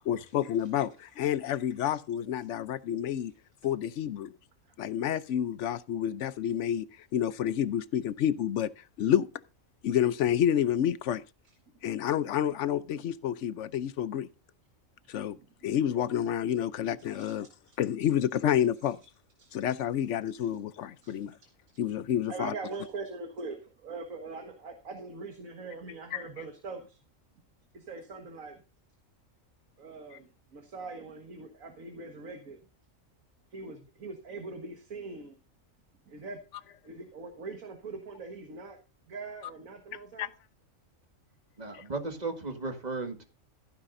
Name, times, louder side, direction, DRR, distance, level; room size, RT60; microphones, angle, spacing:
voice 1, 0.0-3.3 3.6-4.4 4.8-9.3 9.8-11.2 11.8-14.3 15.1-15.4 15.6-17.5 17.8-19.0 19.5-21.4 21.8-22.5 26.1-26.2 30.1-30.2 40.2-40.3 41.7-41.8, left 10 dB, 65° left, 0.9 m, -29 dB
voice 2, 22.3-27.0 27.7-28.6 29.8-32.6 33.5-35.4 36.1-36.4 36.8-38.8 39.1-40.3, right 3 dB, 85° right, 2.0 m, -42 dB
voice 3, 41.6-43.2, right 3 dB, 30° right, 1.9 m, -35 dB
15.0 x 9.7 x 2.6 m
omnidirectional pair, 1.4 m